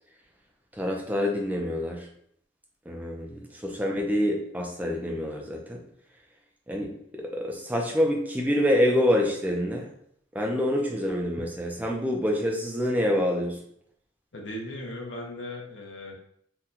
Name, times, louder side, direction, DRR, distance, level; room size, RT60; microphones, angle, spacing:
voice 1, 0.7-2.1 2.9-5.8 6.7-6.9 7.2-9.9 10.3-13.6, equal, 10° right, 0 dB, 0.4 m, -26 dB
voice 2, 14.3-16.1, left 1 dB, 60° left, -1 dB, 0.8 m, -37 dB
2.8 x 2.2 x 3.7 m, 0.69 s
head